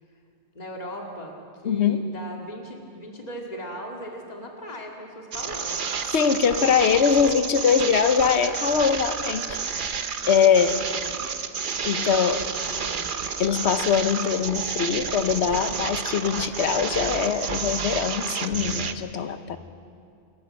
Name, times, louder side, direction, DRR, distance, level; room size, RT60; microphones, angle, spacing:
voice 1, 0.5-5.9 10.2-11.3 11.9-13.1, equal, 35° left, 0 dB, 2.3 m, -39 dB
voice 2, 1.6-2.1 6.1-9.6 10.2-10.9 11.8-12.4 13.4-19.6, left 7 dB, 75° left, 10 dB, 1.2 m, -22 dB
sound 1, 5.3-18.9, right 6 dB, 50° right, 1.0 m, -30 dB
27.5 x 13.5 x 8.1 m, 2.5 s
omnidirectional pair, 1.1 m